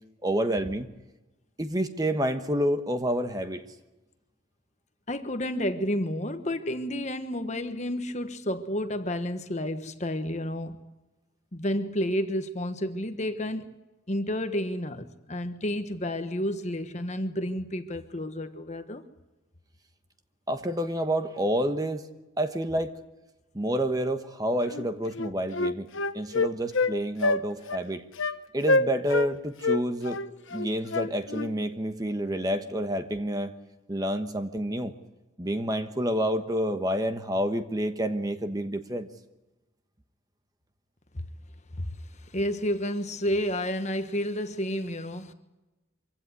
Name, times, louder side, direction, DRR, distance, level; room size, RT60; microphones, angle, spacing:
voice 1, 0.2-0.9 1.6-3.6 20.5-22.1 22.4-23.0 23.5-25.9 26.1-28.0 28.5-30.2 30.5-33.5 33.9-34.9 35.4-39.1, equal, 20° right, 1.2 m, -28 dB
voice 2, 5.1-10.8 11.5-13.7 14.1-19.0 42.2-45.3, equal, 35° left, 1.3 m, -30 dB
Wind instrument woodwind instrument, 24.7-24.9 25.2-26.9 27.2-27.4 27.7-27.8 28.2-28.4 28.6-29.3 29.6-31.5, left 3 dB, 75° left, 1.0 m, -26 dB
24.5 x 16.5 x 9.6 m
head